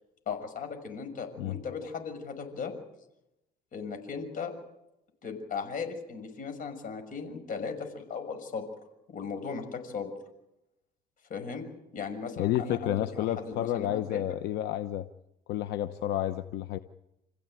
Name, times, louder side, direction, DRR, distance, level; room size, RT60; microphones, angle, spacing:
voice 1, 0.3-2.7 3.7-4.5 5.2-8.6 9.1-10.1 11.3-11.6 11.9-14.2, left 5 dB, 55° left, 6 dB, 6.4 m, -37 dB
voice 2, 12.4-15.0 15.5-16.8, left 12 dB, 85° left, 10 dB, 1.0 m, -30 dB
28.0 x 15.5 x 9.2 m, 0.89 s
cardioid pair, 110°, 17 cm